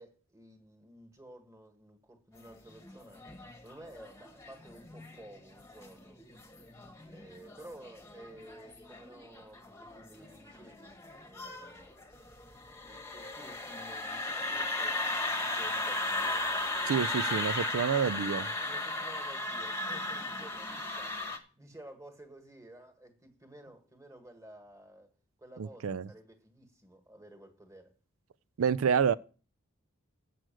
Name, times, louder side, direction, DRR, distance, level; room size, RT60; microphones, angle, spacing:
voice 1, 0.0-3.3 3.6-6.2 7.1-12.1 12.8-17.6 18.6-25.1 25.4-27.9, right 1 dB, 15° right, 1.6 m, -53 dB
sound 1, 2.5-21.4, left 2 dB, 15° left, 1.1 m, -36 dB
voice 2, 16.9-18.5 25.6-26.1 28.6-29.1, right 7 dB, 90° right, 0.4 m, -28 dB
7.7 x 6.4 x 7.6 m
head